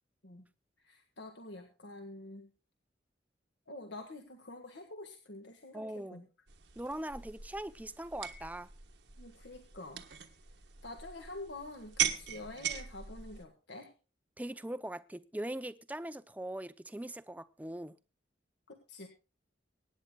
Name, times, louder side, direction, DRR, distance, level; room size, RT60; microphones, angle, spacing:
voice 1, 0.8-2.5 3.7-6.2 9.2-10.1 10.8-13.9 18.7-19.1, left 2 dB, 70° left, 1.6 m, -47 dB
voice 2, 5.7-6.3 6.8-8.7 14.4-17.9, right 1 dB, 10° right, 0.5 m, -41 dB
sound 1, 6.5-13.4, right 9 dB, 75° right, 1.4 m, -40 dB
24.5 x 9.7 x 2.3 m
head